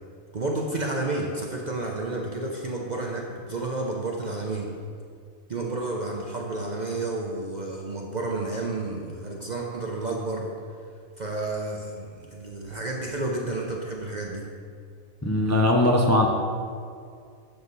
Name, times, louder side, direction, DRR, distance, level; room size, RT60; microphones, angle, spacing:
voice 1, 0.3-4.7 5.5-10.6 11.2-14.4, right 2 dB, 45° right, 0 dB, 0.6 m, -31 dB
voice 2, 15.2-16.3, left 1 dB, 20° left, -1 dB, 0.4 m, -20 dB
7.9 x 7.3 x 4.0 m, 2.2 s
omnidirectional pair, 1.4 m